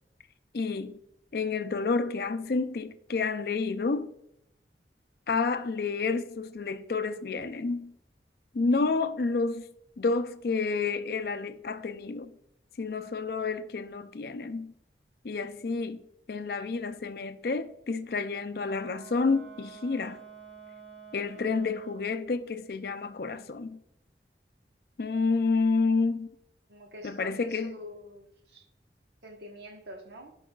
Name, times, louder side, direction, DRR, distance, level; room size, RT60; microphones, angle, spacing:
voice 1, 0.5-1.0 1.3-4.1 5.3-7.9 8.5-9.7 10.0-12.3 12.8-14.7 15.2-16.0 16.3-20.2 21.1-23.8 25.0-26.3 27.0-27.7, left 4 dB, 60° left, 0.5 m, -29 dB
Wind instrument woodwind instrument, 18.6-22.3, right 7 dB, 5° left, 1.1 m, -49 dB
voice 2, 26.7-28.6 29.2-30.3, equal, 80° right, 1.3 m, -46 dB
11.0 x 5.4 x 2.3 m
head